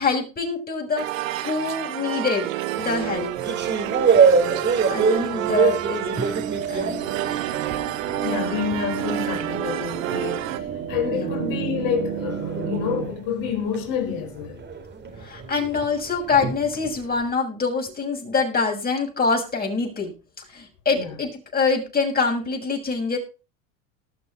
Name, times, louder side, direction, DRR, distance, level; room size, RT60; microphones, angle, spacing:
voice 1, 0.0-2.5 2.8-3.3 4.5-7.1 11.1-11.4 15.2-20.1 20.5-23.2, left 4 dB, 25° left, 7.0 m, -25 dB
sound 1, 1.0-10.6, right 13 dB, 85° right, 1.6 m, -29 dB
sound 2, 2.8-8.0 8.3-17.2, right 5 dB, 25° right, 3.8 m, -25 dB
sound 3, 6.2-13.1, right 9 dB, 40° right, 4.4 m, -31 dB
voice 2, 8.2-14.7 20.9-21.1, left 7 dB, 55° left, 4.8 m, -28 dB
19.5 x 6.9 x 4.7 m
supercardioid pair, 110°, 39 cm